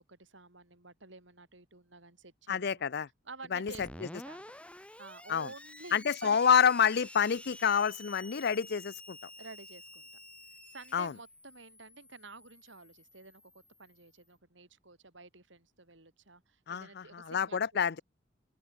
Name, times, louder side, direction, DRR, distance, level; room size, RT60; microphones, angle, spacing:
voice 1, 0.0-2.8 3.2-4.5 4.8-6.4 9.4-10.1 10.6-18.0, right 3 dB, 70° right, 6.2 m, -51 dB
voice 2, 2.5-3.1 3.5-3.7 5.3-5.5 5.9-9.2 10.9-11.1 16.7-18.0, left 7 dB, 60° left, 0.6 m, -28 dB
Screech, 3.7-14.1, left 1 dB, 5° left, 2.9 m, -50 dB
head